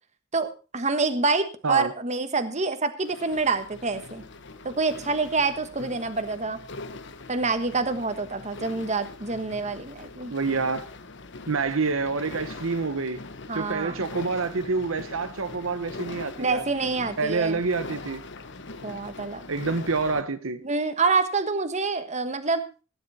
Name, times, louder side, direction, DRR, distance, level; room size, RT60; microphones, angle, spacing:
voice 1, 0.3-4.2 4.6-6.6 7.3-10.3 13.5-14.0 16.4-17.6 18.8-19.4 20.6-22.6, right 4 dB, 35° right, 1.4 m, -27 dB
sound 1, 3.0-20.2, left 3 dB, 60° left, 1.1 m, -42 dB
voice 2, 10.3-10.9 11.5-13.2 13.5-16.6 17.2-18.2 19.5-20.6, right 4 dB, 80° right, 1.0 m, -27 dB
17.0 x 10.5 x 4.2 m
head